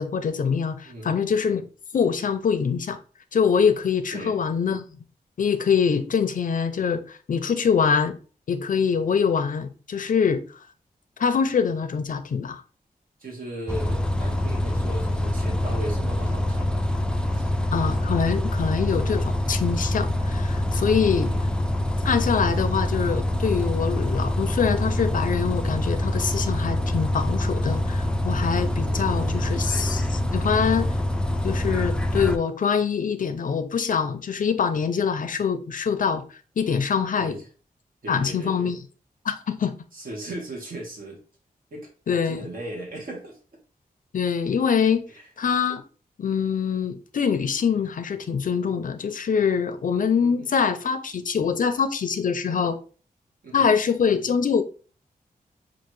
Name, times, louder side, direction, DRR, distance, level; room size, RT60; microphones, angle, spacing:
voice 1, 0.0-1.6 1.9-3.0 3.3-4.8 5.4-8.2 8.5-10.4 11.2-12.6 17.7-21.3 22.0-30.9 31.4-36.2 36.6-37.4 38.1-38.8 39.2-39.7 42.1-42.5 44.1-45.0 45.4-45.8 46.2-52.8 53.5-54.6, left 6 dB, 60° left, 0.5 m, -24 dB
voice 2, 0.8-1.2 4.1-4.4 13.2-16.8 17.3-17.5 21.2-21.4 28.9-29.7 37.2-37.5 38.0-38.8 39.9-41.2 41.7-43.4 45.1-45.3 50.2-50.5 53.4-53.7, right 1 dB, 70° right, 1.3 m, -37 dB
Bus, 13.7-32.4, left 1 dB, 5° left, 0.3 m, -25 dB
6.0 x 2.5 x 3.1 m
wide cardioid pair, 145°, 15 cm